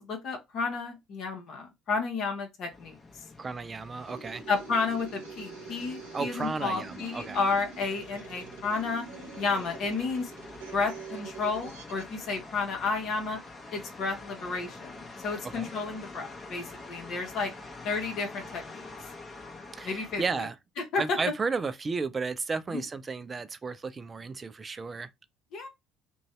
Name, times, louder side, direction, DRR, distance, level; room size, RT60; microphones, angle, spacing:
voice 1, 0.0-3.0 4.5-9.1 9.4-10.3 10.7-13.4 13.7-17.5 17.8-18.9 19.8-20.5 20.8-21.2 22.7-22.8 25.5-25.7, left 4 dB, 55° left, 0.9 m, -31 dB
sound 1, 2.7-20.4, left 3 dB, 25° left, 0.9 m, -47 dB
voice 2, 3.4-4.4 6.1-7.4 15.6-15.7 19.7-20.5 21.0-25.1, right 4 dB, 30° right, 0.4 m, -33 dB
sound 2, 4.0-12.2, right 4 dB, 80° right, 0.8 m, -45 dB
2.6 x 2.3 x 3.1 m
hypercardioid pair, 60°, 0 cm